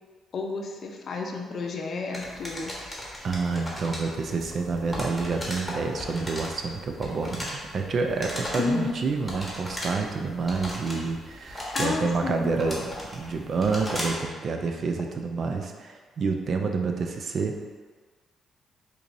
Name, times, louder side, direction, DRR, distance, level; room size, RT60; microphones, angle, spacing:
voice 1, 0.3-2.8 8.6-8.9 11.7-12.5, left 4 dB, 55° left, 1 dB, 0.5 m, -31 dB
sound 1, 2.1-14.3, left 1 dB, 10° left, 1.0 m, -37 dB
voice 2, 3.2-17.6, right 4 dB, 55° right, 3 dB, 0.4 m, -28 dB
4.5 x 2.7 x 2.6 m, 1.5 s
cardioid pair, 90°, 0 cm